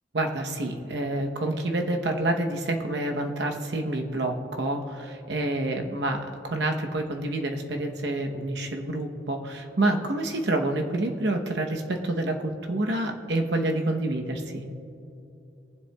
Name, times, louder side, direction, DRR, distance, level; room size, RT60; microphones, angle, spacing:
voice 1, 0.1-14.6, right 2 dB, 70° right, 3 dB, 0.9 m, -28 dB
22.5 x 7.6 x 2.3 m, 2.8 s
head